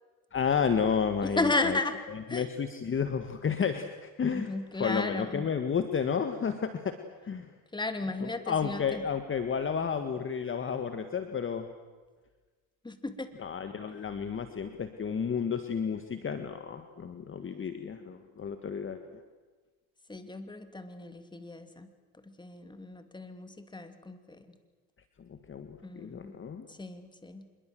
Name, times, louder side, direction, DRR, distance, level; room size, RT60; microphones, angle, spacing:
voice 1, 0.3-1.8 2.3-4.5 4.8-7.0 7.2-7.5 8.2-11.7 13.4-19.2 25.3-26.7, left 6 dB, 30° left, 8 dB, 1.8 m, -31 dB
voice 2, 1.2-1.9 2.3-2.5 4.2-5.5 7.7-9.0 12.8-13.3 20.1-21.9 22.2-24.5 25.8-26.3 26.7-27.5, left 2 dB, 10° left, 8 dB, 2.7 m, -34 dB
26.0 x 22.0 x 7.8 m, 1.4 s
supercardioid pair, 95°, 43 cm